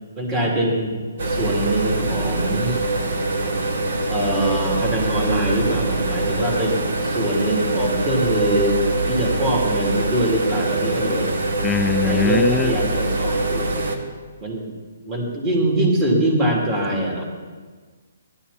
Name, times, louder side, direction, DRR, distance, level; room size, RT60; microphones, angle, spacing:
voice 1, 0.2-0.9 1.2-2.8 4.1-11.3 12.0-13.7 14.4-14.7 15.1-17.2, right 1 dB, 20° right, -2 dB, 3.1 m, -23 dB
sound 1, 1.2-14.0, right 2 dB, 65° right, 1.8 m, -23 dB
voice 2, 11.6-12.7, left 7 dB, 10° left, 10 dB, 0.3 m, -21 dB
16.0 x 12.5 x 4.3 m, 1.5 s
hypercardioid pair, 155°, 0 cm